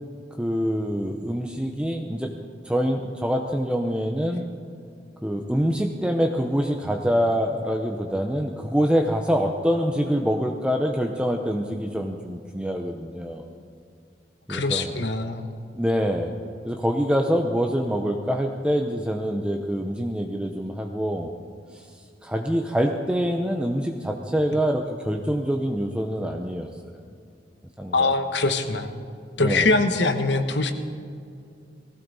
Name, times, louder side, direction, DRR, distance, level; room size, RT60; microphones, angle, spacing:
voice 1, 0.4-2.3 2.6-4.5 5.2-13.4 14.5-14.9 15.7-16.3 16.6-21.3 21.7-21.9 22.2-26.7 27.8-28.1 29.4-29.7, equal, 5° right, 2 dB, 0.7 m, -25 dB
voice 2, 14.5-15.5 27.9-29.0 29.4-30.7, left 3 dB, 70° left, 8 dB, 1.1 m, -23 dB
19.5 x 15.5 x 4.1 m, 2.4 s
head